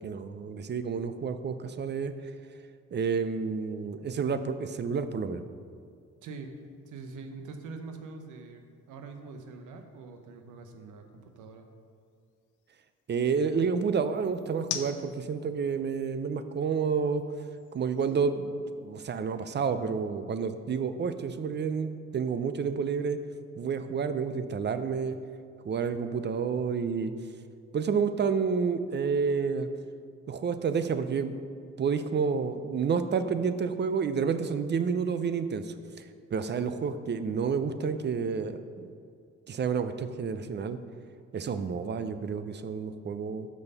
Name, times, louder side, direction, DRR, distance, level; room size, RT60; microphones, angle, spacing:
voice 1, 0.0-2.1 2.9-5.4 13.1-17.2 17.7-23.2 23.6-25.2 25.6-27.1 27.7-29.7 30.3-31.3 31.8-38.9 39.5-40.8 41.3-43.5, right 6 dB, 35° right, 11 dB, 0.5 m, -30 dB
sound 1, 4.9-19.1, left 8 dB, 75° left, 0.7 m, -48 dB
voice 2, 6.2-11.7, right 3 dB, 85° right, 5 dB, 0.9 m, -44 dB
6.2 x 5.4 x 6.7 m, 2.2 s
cardioid pair, 90°, 30 cm